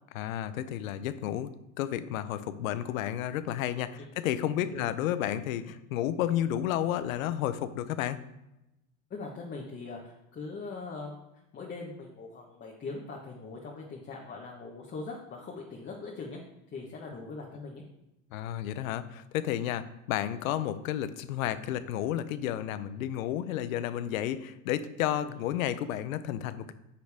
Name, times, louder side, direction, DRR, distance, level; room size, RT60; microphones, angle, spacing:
voice 1, 0.2-1.5 1.8-8.2 18.3-26.7, left 11 dB, 85° left, 13 dB, 0.8 m, -31 dB
voice 2, 4.6-4.9 9.1-11.3 11.5-16.4 16.7-17.8 25.2-25.4, left 3 dB, 25° left, -2 dB, 1.4 m, -41 dB
9.8 x 6.4 x 3.5 m, 0.90 s
supercardioid pair, 110°, 40 cm